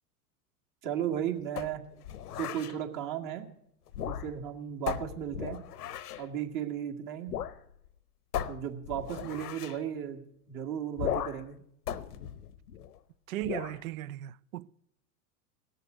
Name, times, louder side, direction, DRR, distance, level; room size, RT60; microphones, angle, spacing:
voice 1, 0.8-1.8 2.4-3.5 4.1-5.6 6.2-7.3 8.5-10.2 10.5-11.6, right 10 dB, 45° right, 2.1 m, -35 dB
sound 1, 1.6-2.8 3.9-4.5 4.9-6.3 7.3-7.6 7.9-8.0 8.3-9.8 11.0-11.5 11.9-13.0 13.4-13.8, left 10 dB, 85° left, 0.9 m, -37 dB
voice 2, 13.3-14.7, right 15 dB, 65° right, 0.6 m, -37 dB
18.0 x 6.8 x 9.2 m
hypercardioid pair, 105°, 45 cm